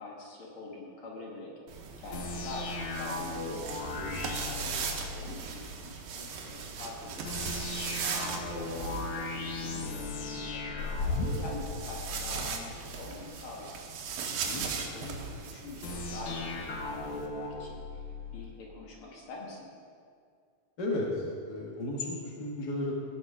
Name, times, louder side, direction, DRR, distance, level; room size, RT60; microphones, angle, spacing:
voice 1, 0.0-3.8 4.4-7.2 7.5-13.8 14.5-18.0 18.3-19.7, left 2 dB, 50° left, -2 dB, 1.8 m, -45 dB
sound 1, 1.7-9.8 10.8-17.3, right 5 dB, 70° right, 2.6 m, -39 dB
sound 2, 2.1-5.4 7.2-12.5 15.8-18.5, left 3 dB, 65° left, 2.1 m, -36 dB
voice 2, 3.9-4.3 14.2-14.6 20.8-22.9, left 1 dB, 85° left, -2 dB, 0.9 m, -34 dB
17.5 x 6.1 x 4.9 m, 2.2 s
omnidirectional pair, 4.4 m